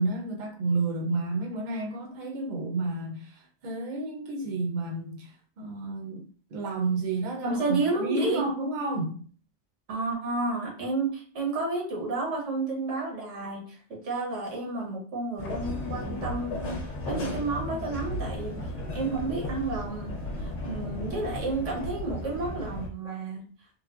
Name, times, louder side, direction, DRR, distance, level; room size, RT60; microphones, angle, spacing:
voice 1, 0.0-6.2 6.5-9.2, right 3 dB, 50° right, 0.7 m, -31 dB
voice 2, 7.4-8.5 9.9-16.8 17.1-18.6 18.9-23.4, right 3 dB, 80° right, 1.2 m, -31 dB
sound 1, 15.4-22.9, left 1 dB, 55° left, 0.7 m, -35 dB
3.1 x 2.1 x 2.4 m
omnidirectional pair, 1.2 m